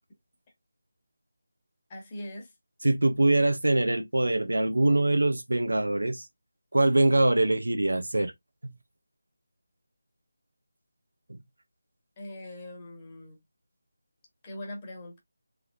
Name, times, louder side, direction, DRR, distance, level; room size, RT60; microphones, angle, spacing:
voice 1, 1.9-2.5 12.2-13.4 14.4-15.2, left 1 dB, 20° left, 1.4 m, -41 dB
voice 2, 2.8-6.3 6.7-8.3 8.6-8.7 11.3-11.4, right 2 dB, 80° right, 0.7 m, -23 dB
3.5 x 3.4 x 2.6 m
figure-of-eight pair, 165°, 0 cm